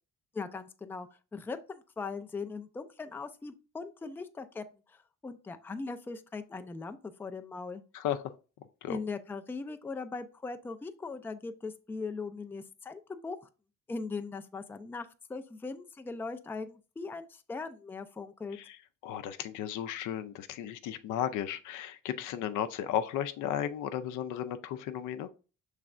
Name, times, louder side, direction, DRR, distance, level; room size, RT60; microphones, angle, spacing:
voice 1, 0.3-7.8 8.9-13.4 13.9-18.6, left 4 dB, 5° left, 0.3 m, -40 dB
voice 2, 7.9-8.3 8.8-9.0 18.5-18.8 19.0-25.3, left 10 dB, 85° left, 0.5 m, -34 dB
5.9 x 3.2 x 2.4 m
cardioid pair, 90°, 30 cm